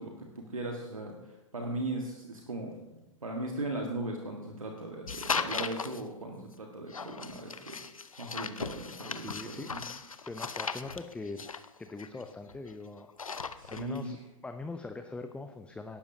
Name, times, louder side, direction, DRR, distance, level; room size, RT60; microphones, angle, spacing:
voice 1, 0.0-2.8 3.2-9.8 13.6-14.1, right 2 dB, 85° right, 1 dB, 1.6 m, -38 dB
sound 1, 5.1-6.0 6.9-12.7 13.0-14.0, left 5 dB, 85° left, 0.7 m, -37 dB
voice 2, 9.2-9.7 10.2-11.5 11.8-13.1 13.7-14.2 14.4-16.0, left 3 dB, 5° left, 7 dB, 0.6 m, -41 dB
18.0 x 12.0 x 2.8 m, 0.97 s
figure-of-eight pair, 105°, 17 cm